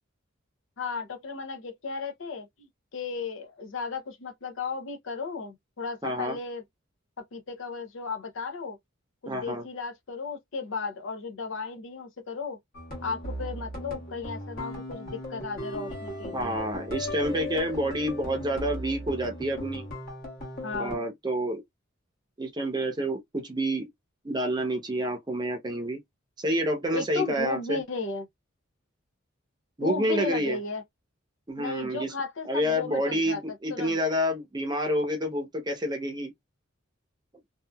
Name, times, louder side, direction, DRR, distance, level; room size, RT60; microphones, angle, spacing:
voice 1, 0.8-6.6 7.3-8.8 9.2-12.6 13.0-16.6 20.6-21.0 26.9-28.3 29.8-30.8 31.6-33.4 33.7-34.0, left 4 dB, 65° left, 0.6 m, -35 dB
voice 2, 6.0-6.4 9.3-9.6 16.3-19.9 20.8-21.6 22.4-23.9 24.2-26.0 26.4-27.8 29.8-30.6 31.5-32.1 32.5-36.3, equal, 20° right, 0.7 m, -28 dB
sound 1, 12.7-21.0, left 1 dB, 50° left, 1.1 m, -37 dB
2.7 x 2.4 x 2.2 m
head